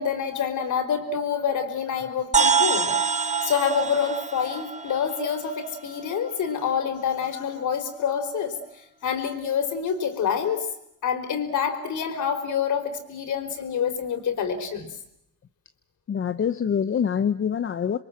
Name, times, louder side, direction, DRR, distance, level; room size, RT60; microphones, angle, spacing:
voice 1, 0.0-2.9 3.4-8.6 9.0-10.7 11.0-14.9, left 7 dB, 55° left, 7 dB, 4.6 m, -27 dB
sound 1, 2.3-6.1, right 5 dB, 20° right, 1.1 m, -25 dB
voice 2, 16.1-18.0, left 7 dB, 35° left, 10 dB, 0.9 m, -25 dB
27.5 x 23.0 x 7.5 m, 0.78 s
cardioid pair, 95°, 35 cm